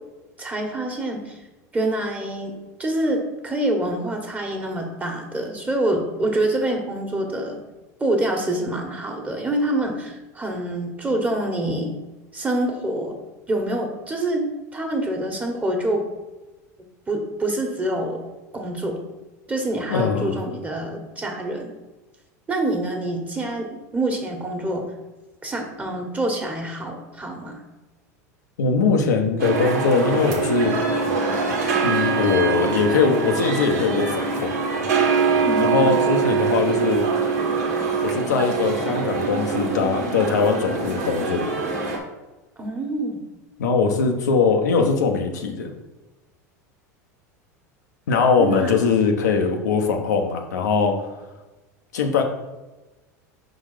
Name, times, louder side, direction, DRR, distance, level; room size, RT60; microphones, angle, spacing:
voice 1, 0.4-1.4 1.7-7.6 8.0-11.9 12.3-13.2 13.5-16.0 17.1-18.2 18.5-19.0 19.5-21.7 22.5-24.8 25.4-27.6 35.4-36.0 42.6-43.2 48.4-48.8, right 1 dB, 15° right, 2 dB, 1.4 m, -26 dB
voice 2, 19.9-20.4 28.6-30.7 31.8-34.5 35.6-37.1 38.0-41.4 43.6-45.7 48.1-50.9 51.9-52.2, left 5 dB, 85° left, 3 dB, 0.8 m, -21 dB
sound 1, 29.4-42.0, right 4 dB, 75° right, 1.4 m, -23 dB
5.2 x 3.9 x 4.9 m, 1.1 s
hypercardioid pair, 90°, 9 cm